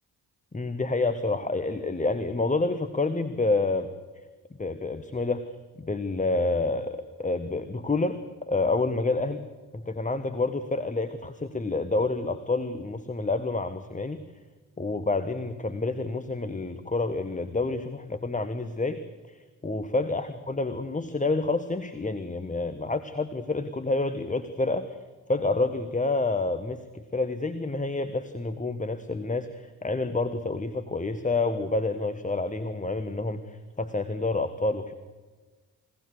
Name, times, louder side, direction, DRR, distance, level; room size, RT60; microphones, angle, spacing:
voice 1, 0.5-3.9 4.6-5.5 5.8-8.2 8.5-9.4 9.7-14.2 14.8-19.0 19.2-19.4 19.6-25.0 25.3-34.9, left 3 dB, 15° left, 11 dB, 1.3 m, -28 dB
22.5 x 18.0 x 6.7 m, 1.3 s
hypercardioid pair, 45°, 44 cm